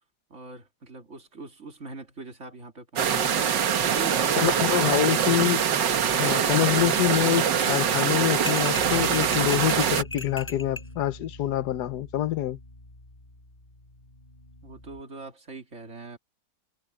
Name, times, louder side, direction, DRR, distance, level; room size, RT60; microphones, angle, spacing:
voice 1, 0.3-5.3 14.6-16.2, right 3 dB, 40° right, 2.7 m, -42 dB
sound 1, 3.0-10.0, right 8 dB, 75° right, 1.9 m, -24 dB
voice 2, 4.4-5.6 6.1-12.6, left 12 dB, 70° left, 1.3 m, -26 dB
sound 2, 8.5-10.9, left 2 dB, 5° left, 4.5 m, -37 dB
Bass guitar, 8.8-15.0, left 1 dB, 25° left, 5.5 m, -44 dB
omnidirectional pair, 1.9 m